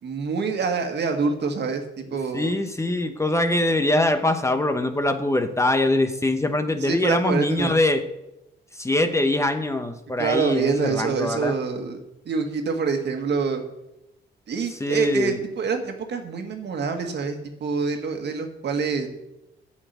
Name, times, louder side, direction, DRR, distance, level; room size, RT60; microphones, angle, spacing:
voice 1, 0.0-2.5 6.8-7.7 10.2-12.0 12.2-13.6 14.5-19.1, right 5 dB, 60° right, 5 dB, 1.7 m, -26 dB
voice 2, 2.3-8.0 8.7-11.5 14.8-15.4, left 1 dB, 15° left, 8 dB, 0.9 m, -23 dB
8.5 x 7.0 x 8.1 m, 0.91 s
cardioid pair, 90°, 20 cm